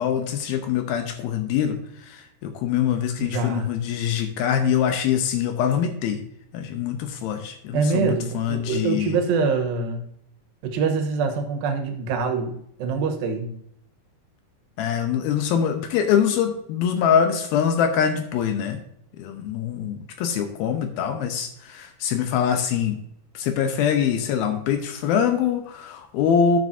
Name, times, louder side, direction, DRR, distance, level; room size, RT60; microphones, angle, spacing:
voice 1, 0.0-1.8 2.1-6.2 6.5-9.2 14.8-18.8 19.2-23.0 23.4-26.6, left 8 dB, 80° left, 6 dB, 2.4 m, -24 dB
voice 2, 3.2-3.7 7.7-10.0 10.6-13.5, right 4 dB, 70° right, 5 dB, 2.7 m, -24 dB
11.5 x 7.6 x 2.7 m, 0.73 s
omnidirectional pair, 4.7 m